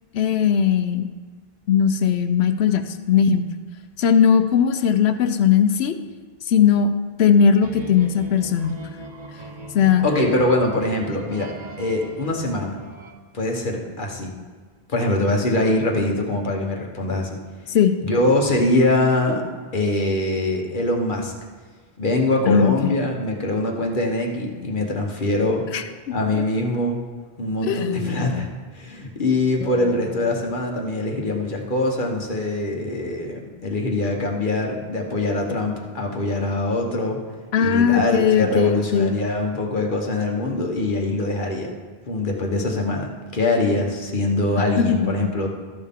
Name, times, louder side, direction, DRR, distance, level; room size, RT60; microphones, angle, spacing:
voice 1, 0.1-1.1 1.7-3.5 4.0-6.0 6.4-6.9 7.2-8.8 9.7-10.0 17.7-18.0 22.5-23.0 25.7-25.8 26.4-26.5 27.6-28.2 37.5-39.1 44.6-45.3, left 7 dB, 85° left, 9 dB, 0.9 m, -19 dB
sound 1, 7.6-13.1, right 2 dB, 50° right, 1.0 m, -40 dB
voice 2, 10.0-11.5 11.8-12.8 13.3-14.3 14.9-17.4 18.0-19.4 19.7-21.3 22.0-25.6 26.1-27.0 27.4-28.5 28.7-37.2 37.6-41.7 42.1-45.5, left 2 dB, 55° left, 1 dB, 1.4 m, -23 dB
Acoustic guitar, 29.6-33.3, right 1 dB, 10° right, 0.7 m, -40 dB
13.0 x 6.4 x 3.6 m, 1.5 s
omnidirectional pair, 1.0 m